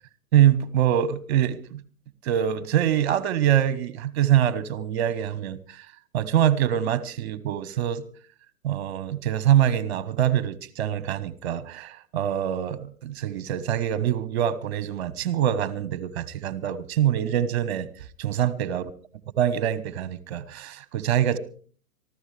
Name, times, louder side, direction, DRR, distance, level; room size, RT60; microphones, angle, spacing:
voice 1, 0.3-1.8 2.2-5.6 6.1-8.0 8.6-17.9 18.2-18.9 19.4-21.4, right 10 dB, 40° right, 1.3 m, -24 dB
24.0 x 15.0 x 3.3 m
figure-of-eight pair, 115°, 47 cm